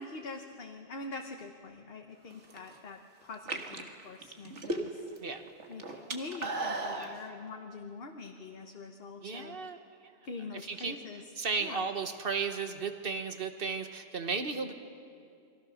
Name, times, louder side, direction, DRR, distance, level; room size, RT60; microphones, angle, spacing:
voice 1, 0.0-5.0 5.7-9.6 10.2-11.2 11.6-11.8, left 3 dB, 55° left, 4 dB, 1.3 m, -44 dB
sound 1, 2.3-2.8 3.3-5.2 5.5-7.1, right 2 dB, 85° right, 2.1 m, -36 dB
voice 2, 9.2-9.8 10.7-11.0 11.4-14.7, right 5 dB, 55° right, 7 dB, 1.6 m, -34 dB
29.0 x 22.5 x 6.5 m, 2.4 s
omnidirectional pair, 1.2 m